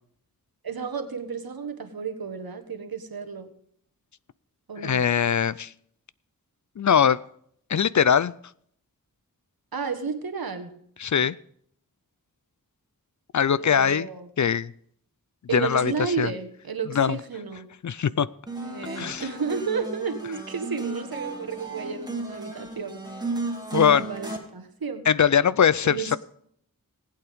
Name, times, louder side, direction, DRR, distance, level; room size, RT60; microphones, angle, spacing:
voice 1, 0.6-3.5 4.7-5.0 9.7-10.7 13.6-14.3 15.5-17.7 18.6-23.0 23.7-25.0 25.8-26.2, right 5 dB, 80° right, 8 dB, 1.5 m, -32 dB
voice 2, 4.8-5.7 6.8-7.2 7.7-8.3 11.0-11.4 13.3-14.1 14.4-14.7 15.5-16.3 16.9-17.2 17.8-18.3 19.0-19.3 23.7-24.0 25.1-26.2, left 7 dB, 55° left, 19 dB, 0.5 m, -21 dB
sound 1, 18.5-24.4, right 2 dB, 10° right, 2.4 m, -34 dB
19.0 x 8.6 x 3.6 m, 0.65 s
wide cardioid pair, 55°, 35 cm